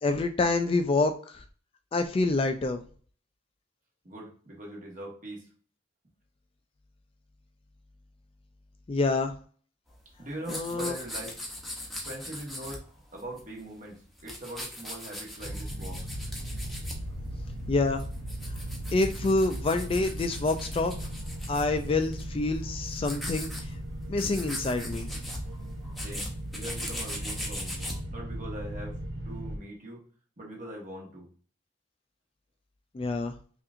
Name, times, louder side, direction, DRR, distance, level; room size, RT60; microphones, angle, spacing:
voice 1, 0.0-1.4 1.9-2.8 8.9-9.3 10.5-11.0 17.7-18.0 18.9-20.9 21.5-23.7 24.1-25.1 32.9-33.3, left 3 dB, 30° left, 7 dB, 0.3 m, -27 dB
voice 2, 4.0-5.5 10.2-11.4 12.0-12.8 13.1-16.1 26.0-27.8 28.1-29.0 29.2-30.0 30.4-31.3, right 1 dB, 45° right, -1 dB, 1.4 m, -41 dB
sound 1, 9.9-13.6 13.9-17.1 17.7-22.3 22.6-23.6 23.9-24.0 24.2-28.0, left 1 dB, ahead, 0.8 m, -40 dB
sound 2, 15.4-29.6, right 1 dB, 70° right, 0.8 m, -37 dB
5.5 x 2.5 x 2.5 m, 0.43 s
head